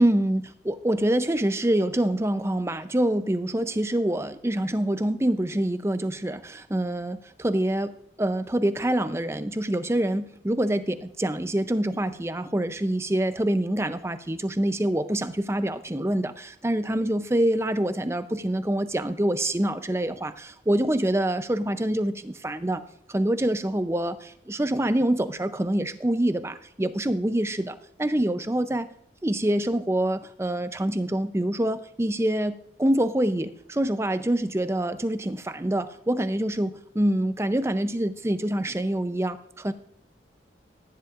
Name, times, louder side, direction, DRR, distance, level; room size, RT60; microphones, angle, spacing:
voice 1, 0.0-7.9 8.2-22.8 23.1-28.9 29.2-39.7, right 1 dB, 15° right, 11 dB, 0.5 m, -26 dB
15.0 x 10.5 x 2.5 m, 0.69 s
head